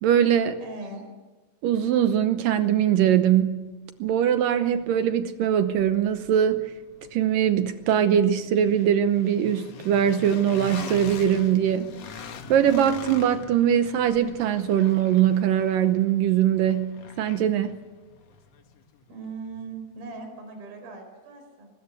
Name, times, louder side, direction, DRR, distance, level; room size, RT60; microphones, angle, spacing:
voice 1, 0.0-0.6 1.6-3.6 4.0-6.7 7.1-17.8, right 9 dB, 75° right, 10 dB, 2.1 m, -22 dB
voice 2, 0.6-1.1 19.1-21.7, right 4 dB, 60° right, 4 dB, 6.4 m, -39 dB
sound 1, 3.7-19.6, left 6 dB, 60° left, 1.7 m, -43 dB
23.5 x 21.0 x 8.3 m, 1.2 s
omnidirectional pair, 4.9 m